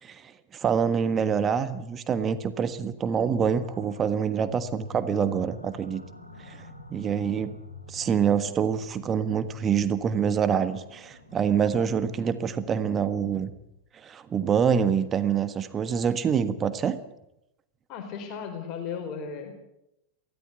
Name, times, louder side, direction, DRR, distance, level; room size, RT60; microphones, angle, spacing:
voice 1, 0.0-6.0 6.4-6.6 6.9-7.5 7.9-13.5 13.9-17.0, right 7 dB, 25° right, 12 dB, 1.4 m, -26 dB
sound 1, 3.3-13.8, left 2 dB, 90° left, 3.0 m, -47 dB
voice 2, 17.9-19.5, left 6 dB, 40° left, 5 dB, 4.7 m, -35 dB
23.5 x 17.5 x 8.2 m, 0.87 s
figure-of-eight pair, 90°, 0 cm